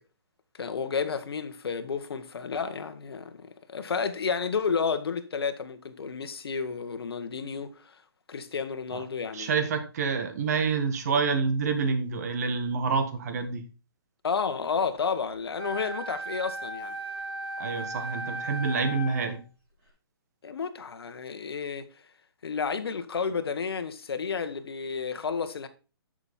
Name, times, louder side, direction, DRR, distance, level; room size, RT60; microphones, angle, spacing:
voice 1, 0.6-8.0 8.3-9.6 14.2-17.0 20.4-21.9 22.4-25.7, left 5 dB, 75° left, 1.4 m, -31 dB
voice 2, 9.3-13.6 17.6-19.4, right 5 dB, 40° right, 1.8 m, -28 dB
Wind instrument woodwind instrument, 15.6-19.3, right 1 dB, 15° right, 5.0 m, -36 dB
10.5 x 6.4 x 4.3 m
hypercardioid pair, 165°, 13 cm